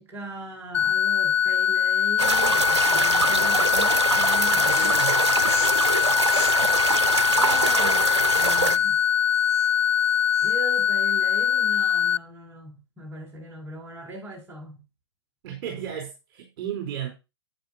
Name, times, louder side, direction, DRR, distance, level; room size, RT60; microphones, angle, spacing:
voice 1, 0.0-5.0 7.2-9.0 10.4-14.8 15.7-15.8, right 2 dB, 15° right, 6.7 m, -39 dB
sound 1, 0.7-12.2, left 9 dB, 80° left, 0.4 m, -22 dB
sound 2, 2.2-8.8, right 4 dB, 90° right, 0.6 m, -24 dB
sound 3, 4.6-10.8, left 6 dB, 20° left, 1.9 m, -40 dB
voice 2, 4.6-5.2 15.4-17.1, right 9 dB, 50° right, 4.3 m, -34 dB
11.5 x 8.8 x 2.8 m
figure-of-eight pair, 110°, 14 cm